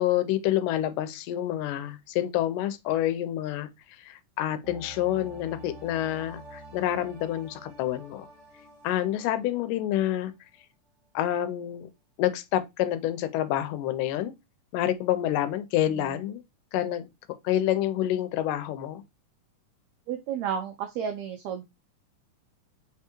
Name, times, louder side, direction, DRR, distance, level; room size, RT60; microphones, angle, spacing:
voice 1, 0.0-3.7 4.0-8.3 8.8-10.3 11.2-11.9 12.2-14.3 14.7-16.4 16.7-17.1 17.4-19.0, left 12 dB, 85° left, 2.1 m, -28 dB
sound 1, 4.6-10.3 10.6-10.7, right 1 dB, 60° right, 1.7 m, -48 dB
voice 2, 20.1-21.6, right 8 dB, 90° right, 1.6 m, -32 dB
4.8 x 3.5 x 2.9 m
omnidirectional pair, 3.7 m